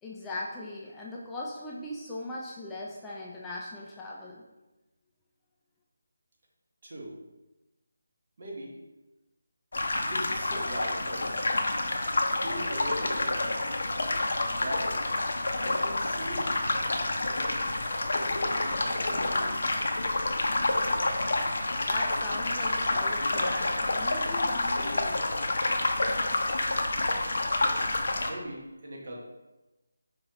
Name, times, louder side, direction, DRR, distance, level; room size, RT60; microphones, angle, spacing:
voice 1, 0.0-4.5 21.6-25.2, left 1 dB, 10° left, -4 dB, 0.4 m, -39 dB
voice 2, 6.8-7.1 8.4-8.8 9.9-11.3 12.3-13.7 14.4-15.0 15.6-16.5 17.0-17.6 18.0-19.6 28.3-29.2, equal, 50° right, -2 dB, 1.2 m, -40 dB
sound 1, 9.7-28.3, left 2 dB, 60° left, 0.6 m, -28 dB
5.3 x 3.0 x 3.0 m, 1.1 s
figure-of-eight pair, 155°, 0 cm